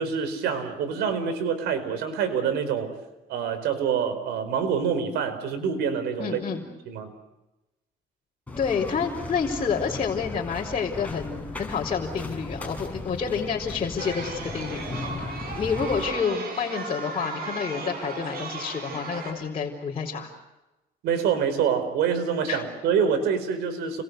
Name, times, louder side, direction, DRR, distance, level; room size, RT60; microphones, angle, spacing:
voice 1, 0.0-2.9 3.3-6.4 6.9-7.1 21.0-24.0, right 7 dB, 80° right, 9 dB, 5.0 m, -26 dB
voice 2, 6.2-6.7 8.6-15.1 15.6-20.3 22.5-22.6, left 6 dB, 35° left, -3 dB, 4.4 m, -29 dB
sound 1, 8.5-16.0, left 2 dB, 10° left, 7.1 m, -37 dB
Chatter, 14.0-19.3, right 4 dB, 65° right, 7.8 m, -36 dB
30.0 x 22.5 x 8.2 m, 1.0 s
cardioid pair, 110°, 17 cm